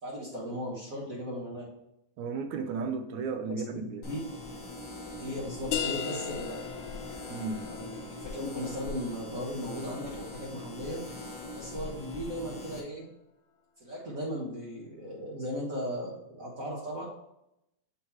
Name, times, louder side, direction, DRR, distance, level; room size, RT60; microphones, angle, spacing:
voice 1, 0.0-1.6 3.8-4.2 5.2-6.6 7.6-11.0 11.5-13.1 13.8-17.0, equal, 55° right, -5 dB, 0.9 m, -37 dB
voice 2, 2.2-4.1 7.3-7.6, right 4 dB, 80° right, 7 dB, 2.0 m, -34 dB
sound 1, 4.0-12.8, left 2 dB, 55° left, 0.8 m, -42 dB
sound 2, 5.7-11.1, left 8 dB, 85° left, 2.0 m, -39 dB
7.5 x 2.9 x 4.6 m, 0.85 s
omnidirectional pair, 3.4 m